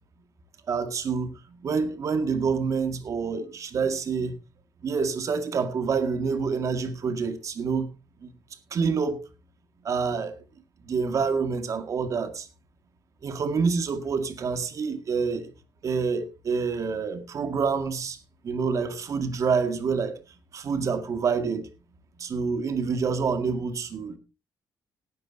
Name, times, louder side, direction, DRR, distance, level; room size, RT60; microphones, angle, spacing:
voice 1, 0.7-4.4 4.8-7.9 8.2-8.3 8.7-9.2 9.8-10.4 10.8-12.5 13.2-15.5 15.8-18.2 18.4-20.2 20.5-21.7 22.2-24.2, right 5 dB, 45° right, 2.0 m, -27 dB
18.5 x 10.5 x 2.8 m
cardioid pair, 125°, 7 cm